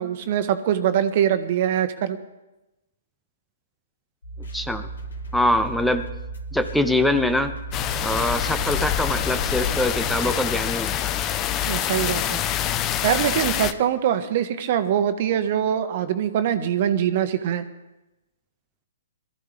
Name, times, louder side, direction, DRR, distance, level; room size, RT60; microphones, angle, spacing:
voice 1, 0.0-2.2 11.6-12.4 13.0-17.6, right 9 dB, 50° right, 10 dB, 1.3 m, -23 dB
sound 1, 4.2-10.4, right 3 dB, 80° left, 3.2 m, -35 dB
voice 2, 4.5-4.9 5.3-6.1 6.5-7.5 8.0-11.1, left 1 dB, ahead, 8 dB, 0.8 m, -23 dB
sound 2, 7.7-13.7, left 11 dB, 25° left, 0.9 m, -26 dB
22.5 x 14.0 x 3.5 m, 0.98 s
hypercardioid pair, 125°, 0 cm